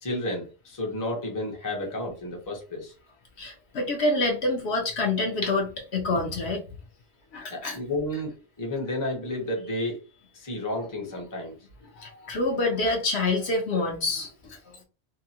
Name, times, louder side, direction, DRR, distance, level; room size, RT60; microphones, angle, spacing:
voice 1, 0.0-2.9 7.5-11.5, left 1 dB, 20° left, 0 dB, 0.7 m, -32 dB
voice 2, 3.4-6.6 7.3-7.8 11.9-14.6, left 2 dB, 60° left, 1 dB, 1.0 m, -27 dB
2.8 x 2.6 x 2.8 m, 0.33 s
omnidirectional pair, 1.3 m